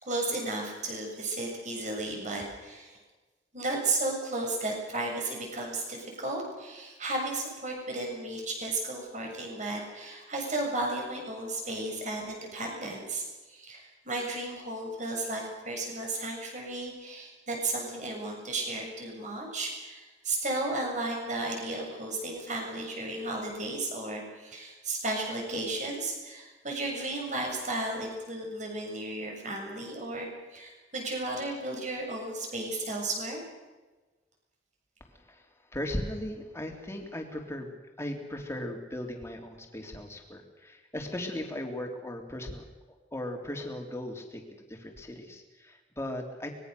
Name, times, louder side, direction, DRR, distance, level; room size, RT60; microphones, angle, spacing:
voice 1, 0.0-3.0 3.5-33.4, right 2 dB, 40° right, 1 dB, 7.2 m, -34 dB
voice 2, 35.1-35.5 35.7-37.7 38.0-42.6 43.1-44.4 44.7-46.5, left 1 dB, 15° left, 2 dB, 3.5 m, -37 dB
24.5 x 21.5 x 6.8 m, 1.2 s
head